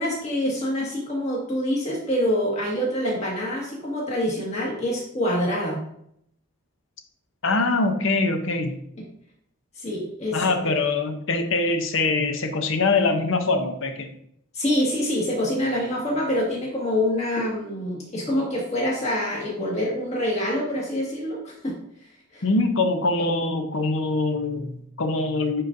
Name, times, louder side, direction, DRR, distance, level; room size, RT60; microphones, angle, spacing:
voice 1, 0.0-5.8 9.8-10.7 14.5-21.7 22.3-22.4, left 1 dB, 30° left, -4 dB, 1.8 m, -26 dB
voice 2, 7.4-8.7 10.3-14.1 22.4-25.6, left 3 dB, 60° left, 7 dB, 0.7 m, -23 dB
9.5 x 3.9 x 2.7 m, 0.71 s
head